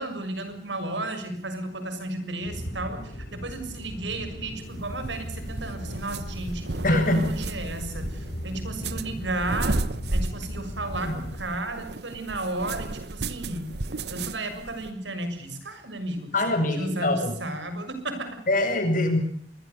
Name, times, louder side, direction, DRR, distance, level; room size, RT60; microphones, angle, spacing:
voice 1, 0.0-9.8 10.1-13.7 14.1-16.3 16.6-18.4, right 2 dB, 85° right, 9 dB, 6.6 m, -33 dB
sound 1, 2.4-11.4, equal, 65° left, 7.1 m, -37 dB
sound 2, 4.7-14.9, right 2 dB, 65° right, 1.1 m, -34 dB
voice 2, 6.8-7.3 16.3-17.3 18.5-19.2, left 1 dB, 50° left, 6 dB, 7.2 m, -23 dB
27.5 x 22.0 x 7.1 m, 0.64 s
head